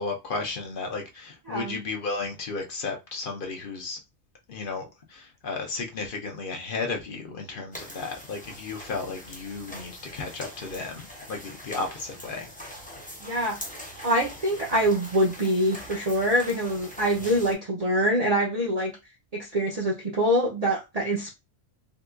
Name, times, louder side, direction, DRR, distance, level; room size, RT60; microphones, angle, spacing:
voice 1, 0.0-4.0 4.5-4.8 5.1-12.5 17.1-17.2, left 3 dB, 55° left, 0.7 m, -34 dB
sound 1, 7.7-17.5, equal, 10° left, 0.5 m, -43 dB
voice 2, 13.2-13.6 14.0-18.9 19.3-21.3, equal, 40° right, 0.6 m, -25 dB
3.7 x 2.3 x 2.4 m
omnidirectional pair, 1.2 m